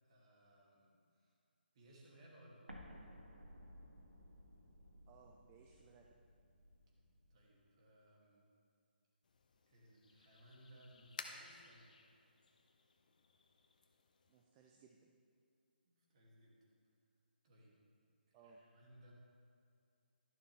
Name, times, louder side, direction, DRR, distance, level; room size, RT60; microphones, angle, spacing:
voice 1, 0.0-1.4 1.7-2.7 7.3-8.5 9.7-11.9 15.8-16.6 17.4-17.8 18.3-19.1, right 1 dB, 35° right, -3 dB, 2.4 m, -64 dB
Explosion, 2.7-7.4, equal, 80° right, 1.6 m, -58 dB
voice 2, 5.1-6.1 14.3-15.1 18.3-18.6, right 5 dB, 20° right, 1 dB, 0.5 m, -64 dB
sound 1, 9.2-14.4, left 4 dB, 50° left, 0.8 m, -57 dB
12.0 x 11.0 x 3.3 m, 2.4 s
figure-of-eight pair, 140°, 6 cm